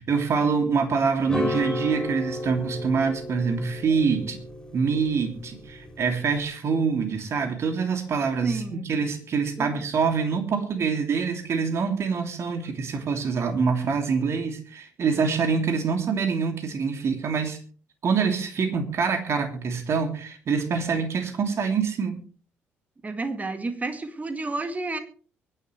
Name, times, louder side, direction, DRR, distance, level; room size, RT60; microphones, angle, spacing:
voice 1, 0.0-4.4 4.7-17.6 18.0-22.2, right 5 dB, 45° right, 6 dB, 2.7 m, -25 dB
sound 1, 1.3-6.5, left 1 dB, 10° left, 3.8 m, -33 dB
voice 2, 8.4-8.9 9.6-9.8 23.0-25.0, right 3 dB, 25° right, 9 dB, 2.1 m, -30 dB
23.5 x 10.5 x 3.3 m, 0.42 s
figure-of-eight pair, 45°, 6 cm